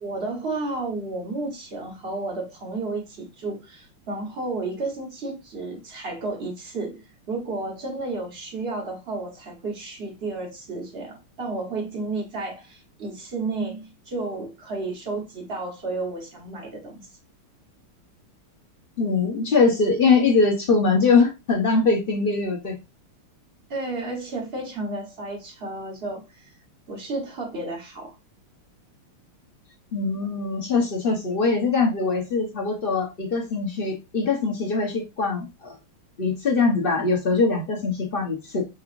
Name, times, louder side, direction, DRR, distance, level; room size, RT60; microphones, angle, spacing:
voice 1, 0.0-17.1 23.7-26.5 26.9-28.2, right 3 dB, 35° right, 1.1 m, -32 dB
voice 2, 19.0-22.7 29.9-35.8 36.2-38.6, left 4 dB, 75° left, 0.5 m, -22 dB
6.0 x 3.1 x 2.5 m
omnidirectional pair, 2.4 m